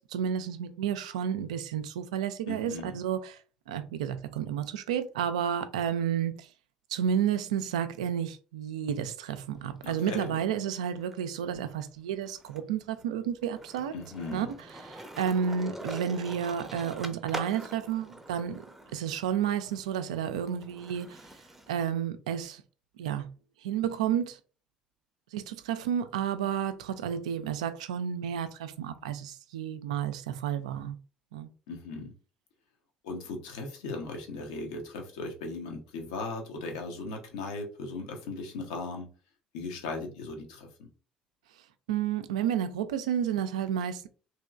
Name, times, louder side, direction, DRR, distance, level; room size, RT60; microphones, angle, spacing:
voice 1, 0.1-3.4 3.7-6.5 6.9-13.9 14.3-14.5 15.0-18.6 18.9-21.2 21.7-22.6 23.0-23.3 23.6-24.4 25.3-31.0 31.3-31.5 41.9-44.1, right 9 dB, 75° right, 0.3 m, -31 dB
voice 2, 2.5-3.0 9.8-10.4 13.9-14.5 31.7-32.1 33.0-39.1 39.5-40.9, left 3 dB, 70° left, 0.7 m, -38 dB
Skateboard, 9.6-11.1 11.5-21.7, right 1 dB, 5° right, 0.6 m, -45 dB
3.0 x 2.8 x 2.3 m
figure-of-eight pair, 55°, 4 cm